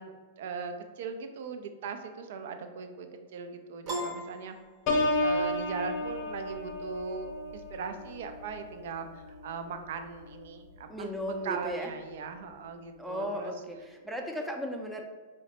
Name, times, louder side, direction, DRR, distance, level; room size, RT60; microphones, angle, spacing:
voice 1, 0.0-4.5 5.2-13.5, right 5 dB, 60° right, 7 dB, 0.4 m, -39 dB
Piano, 3.9-5.4, equal, 35° right, 0.7 m, -38 dB
Piano 2, 4.9-10.5 11.0-11.3, left 1 dB, 45° left, 0.6 m, -33 dB
voice 2, 10.9-11.9 13.0-15.0, equal, 5° right, 2 dB, 0.5 m, -36 dB
4.6 x 2.1 x 2.9 m, 1.4 s
figure-of-eight pair, 100°, 0 cm